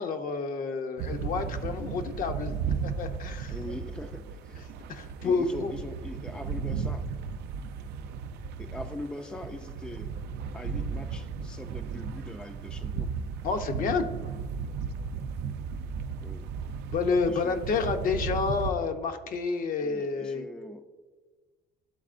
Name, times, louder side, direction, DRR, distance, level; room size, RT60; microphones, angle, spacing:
voice 1, 0.0-2.5 2.8-3.5 4.9-5.7 13.4-14.1 16.9-20.4, left 5 dB, 55° left, 7 dB, 0.7 m, -29 dB
sound 1, 1.0-18.7, right 6 dB, 75° right, 0.4 m, -35 dB
voice 2, 3.5-4.6 5.2-7.1 8.6-10.1 10.5-13.1 16.2-16.5 17.3-17.6 19.8-20.8, left 1 dB, 5° left, 7 dB, 0.3 m, -41 dB
12.0 x 4.1 x 2.5 m, 1.3 s
cardioid pair, 110°, 17 cm